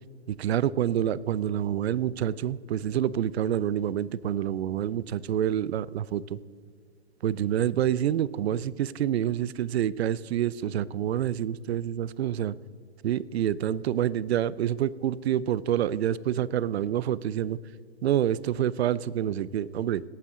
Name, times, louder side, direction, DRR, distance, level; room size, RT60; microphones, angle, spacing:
voice 1, 0.3-6.4 7.2-12.6 13.0-17.6 18.0-20.0, right 10 dB, 70° right, 20 dB, 0.5 m, -27 dB
18.0 x 9.1 x 3.7 m, 2.1 s
hypercardioid pair, 120°, 33 cm